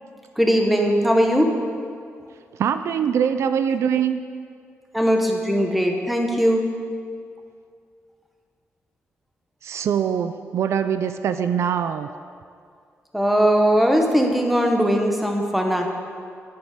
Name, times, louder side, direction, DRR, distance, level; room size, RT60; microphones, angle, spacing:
voice 1, 0.4-1.5 4.9-6.6 13.1-15.9, equal, ahead, 2 dB, 1.1 m, -19 dB
voice 2, 2.6-4.2 9.6-12.1, right 8 dB, 70° right, 10 dB, 0.4 m, -23 dB
10.5 x 10.5 x 5.0 m, 2.3 s
wide cardioid pair, 165°, 5 cm